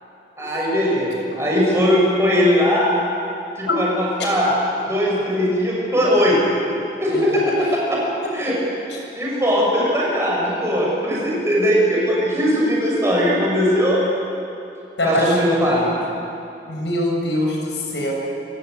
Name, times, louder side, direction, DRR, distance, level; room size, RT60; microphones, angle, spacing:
voice 1, 0.4-2.9 3.6-4.5 4.8-6.4 7.0-8.0 8.3-8.5 9.1-14.0 15.0-15.9, equal, 15° right, -4 dB, 6.5 m, -19 dB
voice 2, 7.1-7.5 15.0-15.5 16.7-18.1, left 1 dB, 85° left, 0 dB, 6.5 m, -23 dB
26.5 x 16.0 x 9.3 m, 2.8 s
head